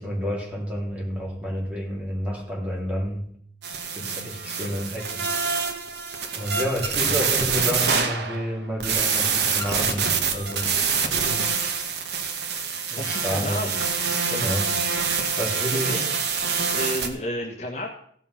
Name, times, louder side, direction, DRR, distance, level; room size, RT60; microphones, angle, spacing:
voice 1, 0.0-3.3 3.9-5.6 6.4-11.5 12.9-13.7 14.3-14.8 15.4-16.0, equal, 5° right, -3 dB, 3.1 m, -30 dB
sound 1, 3.6-8.5 8.8-17.1, right 5 dB, 70° right, 1.4 m, -26 dB
voice 2, 13.0-13.9 15.6-16.1 16.7-17.9, equal, 40° left, 1 dB, 1.4 m, -31 dB
16.0 x 5.5 x 5.8 m, 0.62 s
head